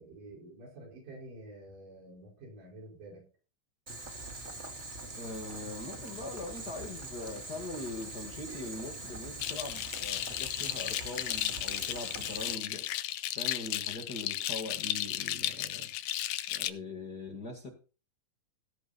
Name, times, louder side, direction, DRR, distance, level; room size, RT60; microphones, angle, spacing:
voice 1, 0.0-3.2, right 2 dB, 75° right, -1 dB, 6.7 m, -49 dB
Boiling, 3.9-12.5, right 2 dB, 25° right, 2.0 m, -43 dB
voice 2, 5.1-12.9 13.3-15.9 16.5-17.7, left 2 dB, 35° left, 3 dB, 2.2 m, -42 dB
sound 1, 9.4-16.7, left 14 dB, 75° left, 2.1 m, -34 dB
16.0 x 7.4 x 4.3 m, 0.35 s
omnidirectional pair, 3.8 m